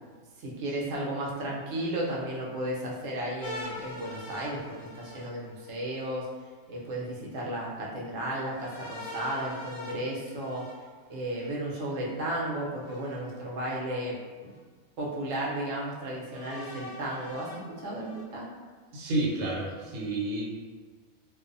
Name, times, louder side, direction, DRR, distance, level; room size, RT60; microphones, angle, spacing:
voice 1, 0.4-6.3 6.7-10.6 11.1-14.2 14.4-14.5 15.0-18.5, right 1 dB, 65° right, -4 dB, 0.8 m, -34 dB
sound 1, 3.4-6.1 8.5-11.5 12.8-13.8 14.5-14.6 16.3-18.2, left 1 dB, 65° left, 0.8 m, -44 dB
voice 2, 18.9-20.4, right 2 dB, 85° right, -4 dB, 1.1 m, -30 dB
2.6 x 2.1 x 2.5 m, 1.5 s
omnidirectional pair, 1.4 m